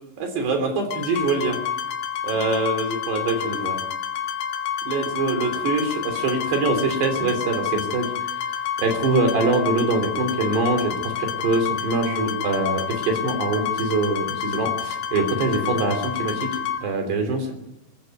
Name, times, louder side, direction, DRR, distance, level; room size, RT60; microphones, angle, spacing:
voice 1, 0.2-1.6 2.2-3.8 4.9-8.1 8.8-17.5, right 3 dB, 60° right, 6 dB, 5.3 m, -24 dB
sound 1, 0.9-16.8, left 8 dB, 85° left, 4.0 m, -29 dB
26.0 x 15.0 x 9.6 m, 0.92 s
omnidirectional pair, 5.6 m